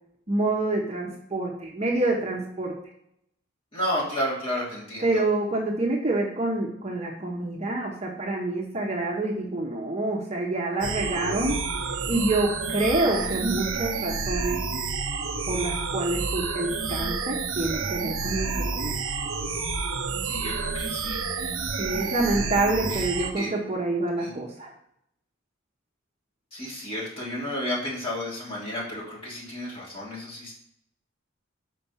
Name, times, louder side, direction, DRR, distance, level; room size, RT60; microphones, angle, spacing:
voice 1, 0.3-2.8 5.0-11.6 12.1-14.6 15.5-19.0 21.8-24.7, right 2 dB, 30° right, 0 dB, 0.9 m, -27 dB
voice 2, 3.7-5.2 13.1-13.3 20.2-21.4 22.0-22.4 22.9-23.1 23.3-23.5 24.2-24.4 26.5-30.5, equal, 30° left, -6 dB, 2.9 m, -32 dB
sound 1, 10.8-23.3, right 4 dB, 75° right, 0.8 m, -29 dB
5.9 x 4.6 x 5.6 m, 0.74 s
head